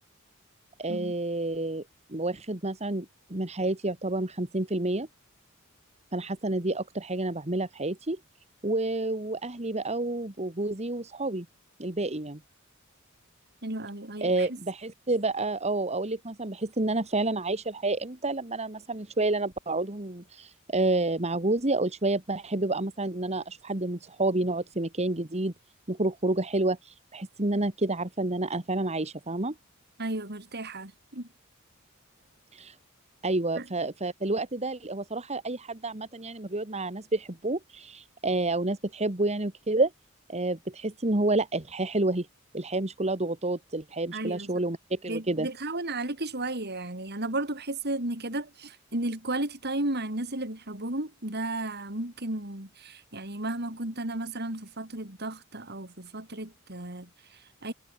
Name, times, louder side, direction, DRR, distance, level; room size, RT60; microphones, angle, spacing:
voice 1, 0.8-1.8 2.1-5.1 6.1-8.2 8.6-11.5 11.8-12.4 14.2-25.5 25.9-29.5 32.5-32.8 33.2-39.9 40.3-42.3 42.5-45.5, right 2 dB, 30° right, 2.0 m, -29 dB
voice 2, 13.6-14.6 30.0-31.3 33.5-33.7 44.1-44.6 45.0-57.7, right 2 dB, 50° right, 4.7 m, -34 dB
head